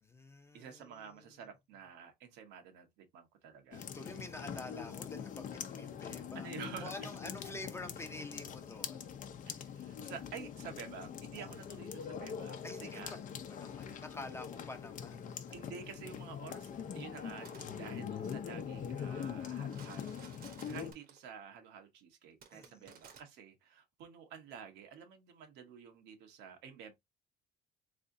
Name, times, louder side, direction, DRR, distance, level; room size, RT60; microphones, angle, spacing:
voice 1, 0.0-1.2 3.7-6.5 6.8-9.1 11.4-11.5 12.6-13.2 13.5-15.4 22.5-22.9, left 2 dB, 15° left, 0.8 m, -48 dB
voice 2, 0.5-3.8 6.3-7.1 9.5-13.2 15.5-20.2 20.7-26.9, right 7 dB, 90° right, 1.2 m, -50 dB
sound 1, 3.7-20.9, left 8 dB, 50° left, 0.7 m, -43 dB
sound 2, 17.3-17.8 19.6-21.3 22.4-23.2, right 7 dB, 60° right, 1.1 m, -56 dB
3.7 x 3.2 x 2.6 m
cardioid pair, 110°, 17 cm